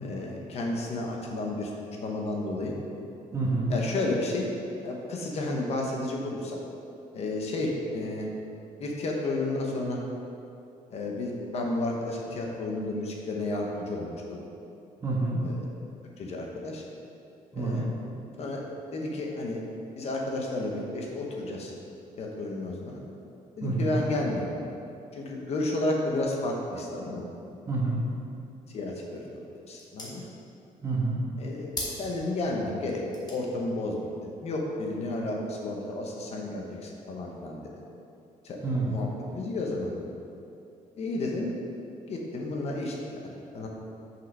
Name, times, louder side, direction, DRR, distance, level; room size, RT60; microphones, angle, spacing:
voice 1, 0.0-1.7 2.0-2.7 3.7-4.4 4.8-6.6 7.1-8.3 8.8-10.0 10.9-14.4 15.4-15.6 16.2-16.8 17.6-17.8 18.4-18.6 18.9-19.6 20.0-21.7 22.2-23.0 23.6-24.4 25.1-27.3 28.7-29.4 29.7-30.2 31.4-31.7 32.0-33.0 33.3-34.1 34.4-37.6 38.4-38.6 38.9-39.9 41.0-41.5 42.1-43.7, left 2 dB, 45° left, 0 dB, 1.0 m, -32 dB
voice 2, 3.3-3.7 15.0-15.5 17.5-17.8 23.6-24.0 27.6-28.0 30.8-31.2 38.6-39.0, right 3 dB, 20° right, -4 dB, 1.2 m, -28 dB
sound 1, 28.7-35.6, left 2 dB, 30° left, 1.4 m, -45 dB
6.1 x 5.6 x 5.4 m, 2.7 s
cardioid pair, 160°, 14 cm